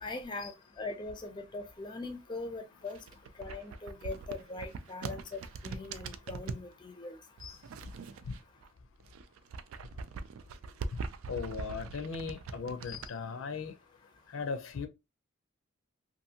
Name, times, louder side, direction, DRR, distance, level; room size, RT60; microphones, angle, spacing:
voice 1, 0.0-3.0 3.4-7.2, left 3 dB, 20° left, 0.4 m, -41 dB
sound 1, 2.8-6.7 7.4-8.7 9.0-13.1, right 4 dB, 90° right, 0.3 m, -42 dB
voice 2, 11.3-13.7 14.3-14.9, left 5 dB, 80° left, 0.5 m, -38 dB
2.6 x 2.5 x 2.7 m
head